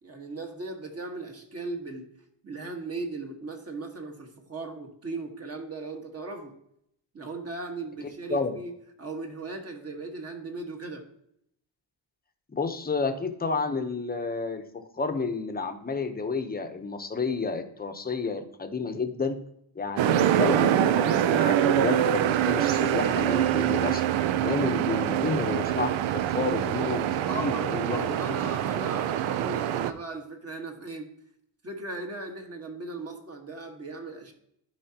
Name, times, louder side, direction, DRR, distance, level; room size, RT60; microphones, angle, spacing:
voice 1, 0.0-2.1 2.4-6.5 7.1-8.7 9.0-11.1 27.3-31.1 31.6-34.3, right 3 dB, 30° right, 3 dB, 1.4 m, -37 dB
voice 2, 8.0-8.6 12.5-19.4 19.7-24.0 24.4-27.1 27.3-28.2, left 4 dB, 20° left, 6 dB, 0.8 m, -30 dB
sound 1, 20.0-29.9, right 11 dB, 85° right, 0.6 m, -25 dB
12.5 x 4.9 x 2.8 m, 0.72 s
cardioid pair, 125°, 45 cm